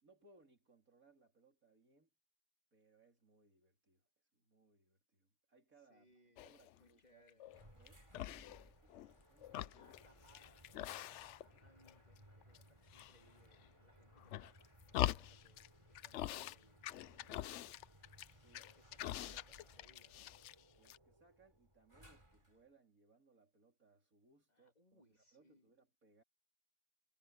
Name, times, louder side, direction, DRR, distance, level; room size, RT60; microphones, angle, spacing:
voice 1, 0.0-2.1 2.7-6.1 6.4-9.0 9.3-9.9 18.3-18.7 19.0-19.1 20.7-26.2, right 3 dB, 90° right, 4.2 m, -70 dB
voice 2, 5.9-7.5 8.4-8.6 9.7-17.7 18.7-20.3 24.5-25.7, left 1 dB, 30° left, 3.0 m, -70 dB
sound 1, 6.4-6.8 7.3-7.9 8.1-9.1 9.4-11.6 11.9-12.6 12.9-13.7 14.2-15.7 16.0-16.6 16.8-20.6 20.9-21.0, left 13 dB, 65° left, 0.8 m, -44 dB
sound 2, 7.5-22.7, right 1 dB, 20° right, 4.0 m, -64 dB
omnidirectional pair, 1.4 m